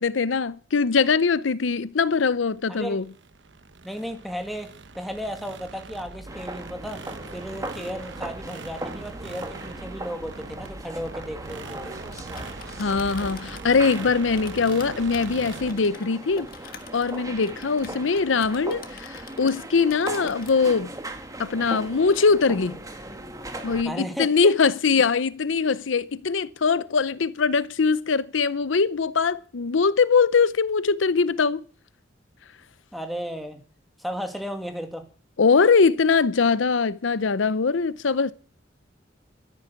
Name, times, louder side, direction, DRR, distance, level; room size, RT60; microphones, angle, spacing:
voice 1, 0.0-3.0 12.8-16.5 16.9-20.9 21.4-22.8 23.6-31.6 35.4-38.3, left 5 dB, 90° left, 0.7 m, -22 dB
sound 1, 2.4-15.7, right 3 dB, 70° right, 1.0 m, -42 dB
voice 2, 2.7-3.0 3.8-7.0 7.3-12.0 23.8-24.5 32.9-33.6 34.0-35.0, equal, ahead, 2.1 m, -34 dB
sound 2, 6.3-23.8, right 2 dB, 20° right, 1.9 m, -38 dB
Typing, 12.0-19.6 19.9-20.7, left 5 dB, 50° left, 1.6 m, -45 dB
13.5 x 10.5 x 8.1 m
head